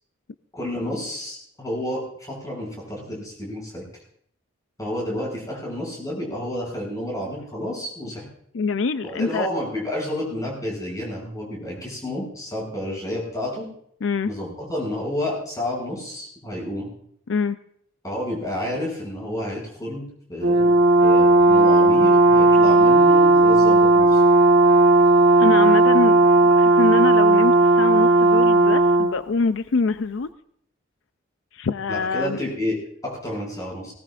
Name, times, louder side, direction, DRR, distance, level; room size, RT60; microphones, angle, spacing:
voice 1, 0.5-3.9 4.8-8.3 9.0-13.7 14.2-16.9 18.0-20.8 21.0-24.2 31.9-33.9, left 1 dB, 20° left, -2 dB, 6.1 m, -30 dB
voice 2, 8.5-9.5 14.0-14.3 17.3-17.6 25.4-26.2 26.5-30.3 31.5-32.4, left 4 dB, 75° left, 12 dB, 0.5 m, -25 dB
Brass instrument, 20.4-29.1, right 2 dB, 80° right, 1.3 m, -15 dB
19.0 x 18.0 x 2.5 m, 0.67 s
head